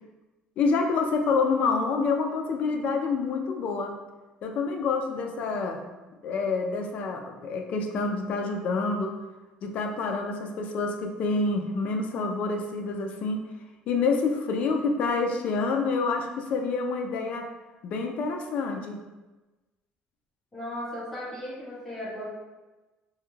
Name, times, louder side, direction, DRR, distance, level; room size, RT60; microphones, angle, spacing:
voice 1, 0.6-3.9 4.4-5.8 6.2-9.1 9.6-13.4 13.9-17.5 17.8-19.0, left 4 dB, 50° left, 4 dB, 0.3 m, -27 dB
voice 2, 20.5-22.3, left 1 dB, 10° left, -9 dB, 0.9 m, -36 dB
2.3 x 2.1 x 3.0 m, 1.1 s
cardioid pair, 145°, 3 cm